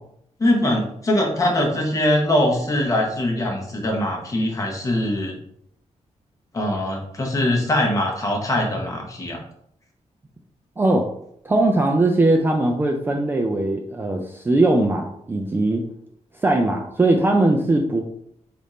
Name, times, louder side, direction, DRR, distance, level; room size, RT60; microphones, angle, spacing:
voice 1, 0.4-5.3 6.5-9.4, left 1 dB, 25° left, 0 dB, 0.8 m, -22 dB
voice 2, 10.8-11.1 11.4-15.8 16.4-18.0, right 2 dB, 20° right, 1 dB, 0.3 m, -20 dB
3.4 x 2.5 x 4.1 m, 0.70 s
wide cardioid pair, 150°, 12 cm